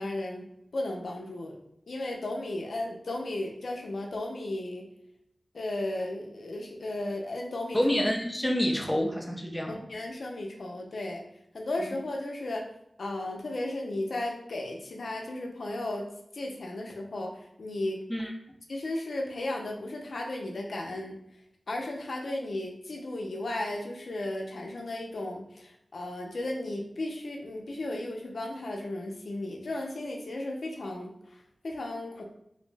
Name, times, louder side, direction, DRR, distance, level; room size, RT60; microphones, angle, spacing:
voice 1, 0.0-1.6 1.9-4.9 5.5-7.8 9.7-11.2 11.5-12.7 13.0-16.1 16.3-18.0 18.7-21.2 21.7-32.2, left 1 dB, 80° left, 1 dB, 0.4 m, -35 dB
voice 2, 7.7-9.8 11.8-11.9 18.1-18.3, equal, 5° left, 0 dB, 0.5 m, -28 dB
2.6 x 2.0 x 3.2 m, 0.77 s
wide cardioid pair, 90°, 0 cm